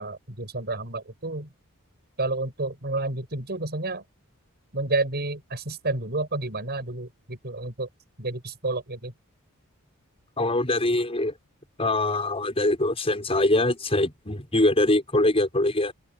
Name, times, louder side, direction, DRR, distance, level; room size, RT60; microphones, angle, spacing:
voice 1, 0.0-1.5 2.2-4.0 4.7-7.9 8.2-9.1, right 2 dB, 50° right, 6.2 m, -30 dB
voice 2, 10.4-11.3 11.8-15.9, left 1 dB, 25° left, 5.9 m, -23 dB
open air
head